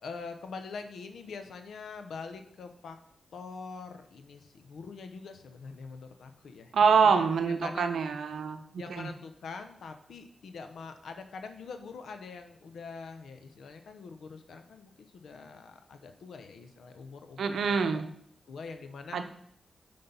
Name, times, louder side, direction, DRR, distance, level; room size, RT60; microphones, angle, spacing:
voice 1, 0.0-3.0 3.3-7.9 8.8-18.0 18.5-19.2, left 4 dB, 85° left, 7 dB, 0.7 m, -44 dB
voice 2, 6.7-9.1 17.4-18.1 19.1-19.2, right 5 dB, 85° right, 7 dB, 0.7 m, -25 dB
6.0 x 5.2 x 5.4 m, 0.66 s
cardioid pair, 95°, 0 cm